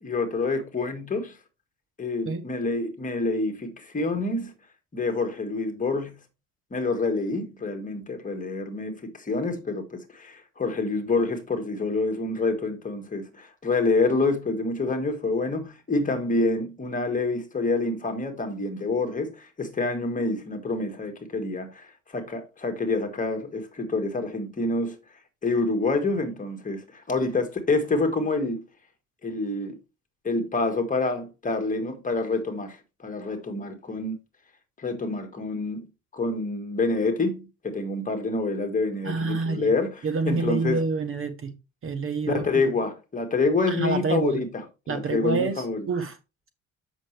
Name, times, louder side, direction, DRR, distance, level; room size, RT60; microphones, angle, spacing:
voice 1, 0.0-1.4 2.0-4.5 4.9-6.1 6.7-21.9 22.1-25.0 25.4-28.6 29.2-29.8 30.2-34.1 34.8-35.9 36.1-40.8 42.3-44.6 44.9-45.8, left 3 dB, 25° left, 1.7 m, -27 dB
voice 2, 39.0-39.7 40.0-41.5 41.8-42.7 43.7-44.4 44.9-46.2, right 4 dB, 40° right, 0.9 m, -27 dB
7.4 x 6.2 x 3.2 m
cardioid pair, 115°, 33 cm